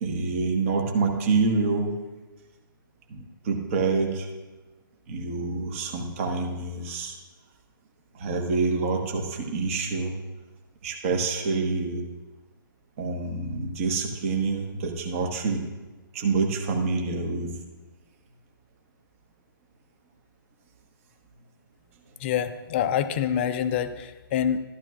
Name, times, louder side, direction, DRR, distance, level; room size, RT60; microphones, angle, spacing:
voice 1, 0.0-1.9 3.1-4.3 5.1-7.1 8.1-10.1 10.8-12.0 13.0-15.7 16.1-17.5, right 4 dB, 35° right, 2 dB, 1.3 m, -27 dB
voice 2, 22.2-24.6, left 9 dB, 30° left, 10 dB, 0.5 m, -26 dB
13.0 x 12.0 x 2.4 m, 1.2 s
figure-of-eight pair, 130°, 12 cm